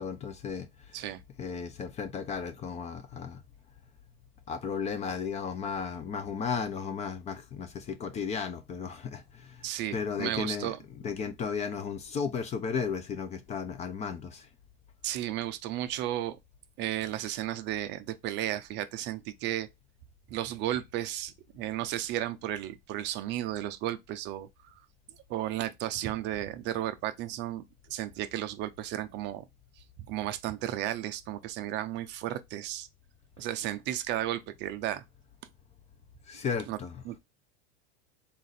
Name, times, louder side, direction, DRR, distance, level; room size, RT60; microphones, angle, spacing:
voice 1, 0.0-1.0 1.4-3.4 4.5-14.5 36.3-37.2, left 6 dB, 25° left, 0.5 m, -35 dB
voice 2, 9.6-10.8 15.0-16.4 16.8-19.7 20.3-24.7 25.3-27.6 27.9-29.4 29.8-32.9 33.4-35.0 36.7-36.8 37.1-37.2, right 13 dB, 40° right, 0.4 m, -34 dB
3.9 x 2.5 x 4.0 m
supercardioid pair, 120°, 30 cm